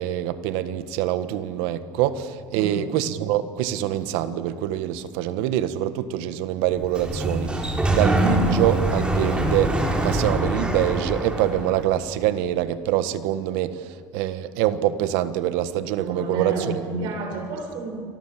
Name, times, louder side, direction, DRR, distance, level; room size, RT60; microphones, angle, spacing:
voice 1, 0.0-9.7 10.0-13.9 14.1-17.1, right 12 dB, 80° right, 12 dB, 1.5 m, -25 dB
Sliding door, 6.7-11.8, right 1 dB, 10° right, 3.8 m, -24 dB
voice 2, 16.0-17.9, right 3 dB, 65° right, 2 dB, 7.8 m, -30 dB
29.0 x 24.0 x 7.6 m, 2.2 s
cardioid pair, 130°, 8 cm